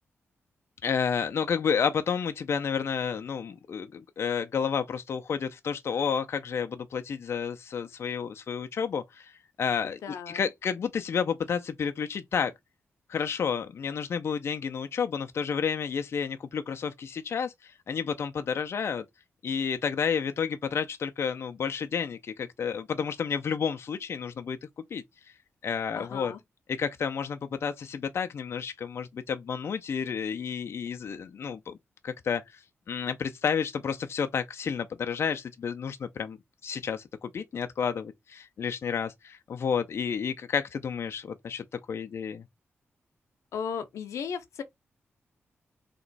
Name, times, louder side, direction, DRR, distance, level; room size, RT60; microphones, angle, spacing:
voice 1, 0.8-12.5 13.1-19.0 19.4-24.6 24.9-25.0 25.6-26.3 26.7-31.8 32.0-36.4 36.6-42.4, left 6 dB, 60° left, 0.5 m, -31 dB
voice 2, 9.8-10.5 25.9-26.4 43.5-44.6, left 7 dB, 90° left, 0.8 m, -36 dB
3.5 x 3.0 x 4.0 m
cardioid pair, 85°, 5 cm